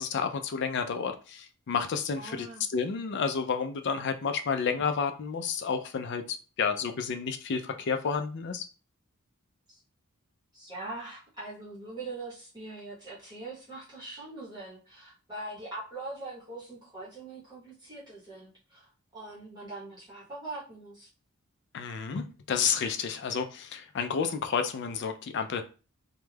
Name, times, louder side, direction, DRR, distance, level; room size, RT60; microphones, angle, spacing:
voice 1, 0.0-2.5 2.7-8.6 21.7-25.6, left 6 dB, 50° left, 0.4 m, -30 dB
voice 2, 2.2-2.6 9.7-9.8 10.5-21.1, right 2 dB, 20° right, 0.8 m, -42 dB
2.3 x 2.1 x 3.2 m
head